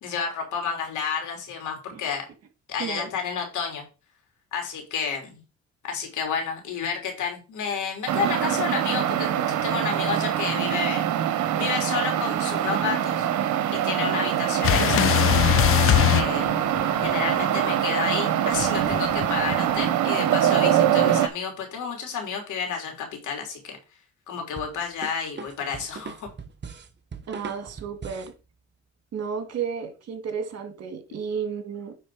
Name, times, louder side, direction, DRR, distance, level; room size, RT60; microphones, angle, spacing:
voice 1, 0.0-2.2 2.7-3.8 4.5-5.4 5.9-11.0 11.6-13.3 13.7-15.1 15.7-16.5 17.0-23.8 24.3-26.3, left 6 dB, 80° left, 3.0 m, -30 dB
voice 2, 2.8-3.1 27.3-28.3 29.1-31.9, right 6 dB, 55° right, 2.0 m, -32 dB
sound 1, 8.1-21.3, right 10 dB, 75° right, 1.0 m, -24 dB
sound 2, 14.6-17.1 18.5-19.8, left 13 dB, 45° left, 0.4 m, -22 dB
sound 3, 24.6-28.4, right 5 dB, 35° right, 1.2 m, -40 dB
9.3 x 4.0 x 4.7 m
cardioid pair, 90°, 30 cm